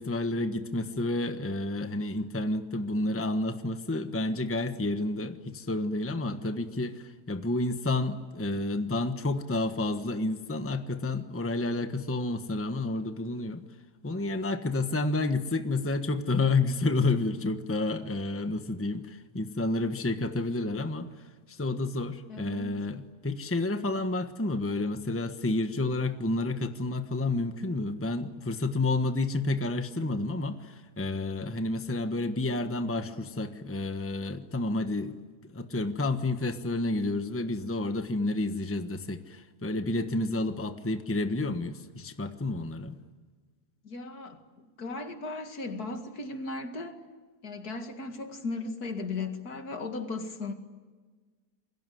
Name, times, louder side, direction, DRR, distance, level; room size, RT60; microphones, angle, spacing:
voice 1, 0.0-13.6 14.0-21.1 21.5-35.2 35.4-43.0, left 2 dB, 10° left, 1.1 m, -30 dB
voice 2, 22.3-22.8 43.8-47.0 47.4-50.5, left 3 dB, 75° left, 2.7 m, -36 dB
28.0 x 22.0 x 9.3 m
omnidirectional pair, 1.7 m